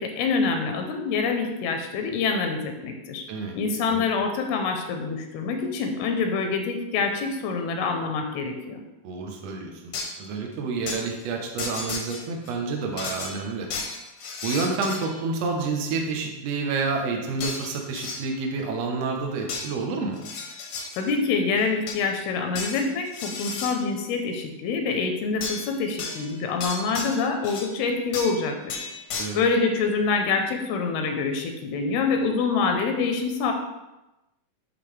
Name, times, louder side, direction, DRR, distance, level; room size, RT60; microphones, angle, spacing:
voice 1, 0.0-3.3 3.5-8.8 21.0-28.8 29.3-33.5, left 4 dB, 90° left, 4 dB, 2.7 m, -26 dB
voice 2, 9.0-9.9 10.2-13.7 14.4-20.2 29.2-29.4, right 4 dB, 80° right, 1 dB, 1.5 m, -29 dB
sound 1, 9.9-10.3 10.9-11.0 11.6-12.5 13.0-15.3 17.4-18.2 19.5-19.7 20.2-21.1 21.6-22.1 22.6-23.8 25.4-25.7 26.0-27.7 28.1-28.4 28.7-29.3, left 4 dB, 75° left, 1.6 m, -34 dB
10.5 x 4.0 x 3.3 m, 0.99 s
omnidirectional pair, 4.4 m